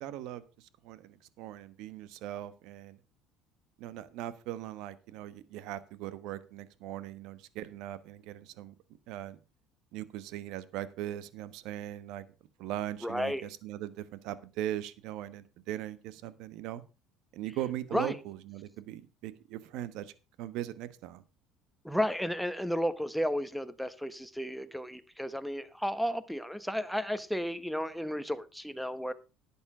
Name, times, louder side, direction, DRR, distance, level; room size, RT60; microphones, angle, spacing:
voice 1, 0.0-3.0 3.8-8.7 9.1-9.4 9.9-12.2 12.6-16.8 17.3-20.1 20.4-21.2, right 12 dB, 70° right, 16 dB, 1.2 m, -39 dB
voice 2, 13.0-13.4 17.9-18.2 21.8-29.1, equal, ahead, 11 dB, 1.1 m, -33 dB
11.5 x 8.6 x 4.9 m, 0.31 s
supercardioid pair, 100°, 0 cm